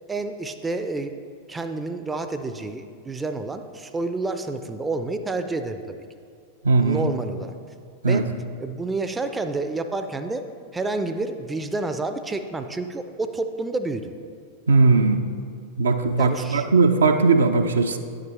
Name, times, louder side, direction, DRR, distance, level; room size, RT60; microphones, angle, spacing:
voice 1, 0.1-1.1 1.5-5.8 6.8-7.5 8.0-8.2 8.6-10.4 10.7-14.1 16.2-16.7, right 3 dB, 10° right, 8 dB, 0.4 m, -29 dB
voice 2, 6.6-7.1 8.0-8.3 14.7-15.3 15.8-18.0, right 3 dB, 70° right, 7 dB, 0.4 m, -19 dB
9.4 x 7.4 x 3.1 m, 2.2 s
figure-of-eight pair, 90°, 0 cm